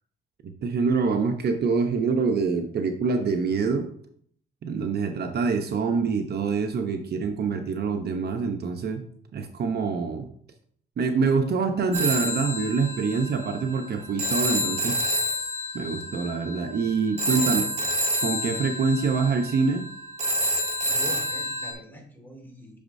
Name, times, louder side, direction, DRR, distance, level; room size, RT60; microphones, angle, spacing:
voice 1, 0.4-3.9 4.6-9.0 9.3-10.3 11.0-15.0 15.7-17.6 18.2-19.9, right 5 dB, 55° right, 6 dB, 0.8 m, -25 dB
Telephone, 11.9-21.7, equal, 30° right, 1.9 m, -28 dB
voice 2, 17.3-17.7 20.8-22.8, equal, 10° left, 1 dB, 2.3 m, -42 dB
8.5 x 6.2 x 2.6 m, 0.62 s
cardioid pair, 90°, 20 cm